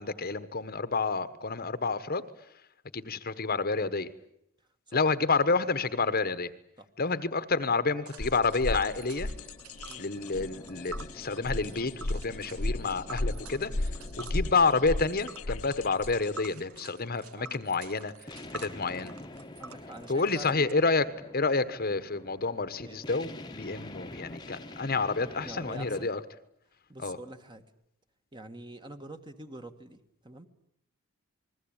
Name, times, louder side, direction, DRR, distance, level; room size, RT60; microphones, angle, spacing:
voice 1, 0.0-2.2 2.9-4.1 4.9-6.5 7.0-9.3 10.0-13.9 14.2-18.1 18.5-19.1 20.1-21.1 21.3-26.2 27.0-27.2, left 4 dB, 45° left, 13 dB, 1.2 m, -29 dB
Tick, 8.0-20.7, right 5 dB, 80° right, 1.5 m, -49 dB
sound 1, 8.2-16.5, left 2 dB, 80° left, 1.1 m, -35 dB
sound 2, 9.0-26.0, left 1 dB, 20° left, 1.2 m, -48 dB
voice 2, 17.3-17.8 19.6-20.7 22.8-23.0 25.4-26.1 26.9-27.6 28.3-30.5, right 1 dB, 20° right, 7 dB, 1.6 m, -46 dB
28.5 x 21.0 x 8.8 m, 0.77 s
head